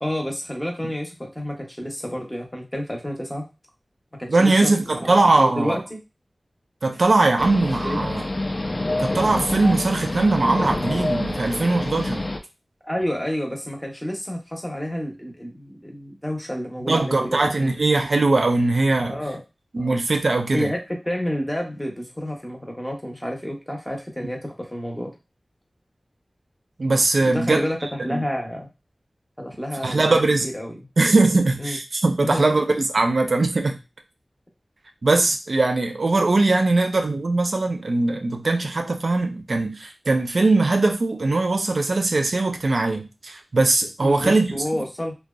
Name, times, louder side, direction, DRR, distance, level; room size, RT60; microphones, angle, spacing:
voice 1, 0.0-3.4 4.2-4.7 5.0-6.0 7.8-8.0 12.8-17.9 19.1-19.4 19.8-19.9 20.5-25.1 27.2-27.8 28.0-28.7 29.4-30.9 31.6-31.8 32.2-32.4 44.0-45.2, equal, 15° left, 0.7 m, -29 dB
voice 2, 4.3-5.8 6.8-8.2 9.0-12.3 16.9-19.2 19.7-20.7 26.8-27.6 28.1-28.2 29.8-30.5 31.0-33.8 35.0-44.4, right 2 dB, 70° right, 0.4 m, -20 dB
sound 1, 7.4-12.4, left 2 dB, 40° left, 0.3 m, -27 dB
2.6 x 2.1 x 2.3 m
wide cardioid pair, 65°, 0 cm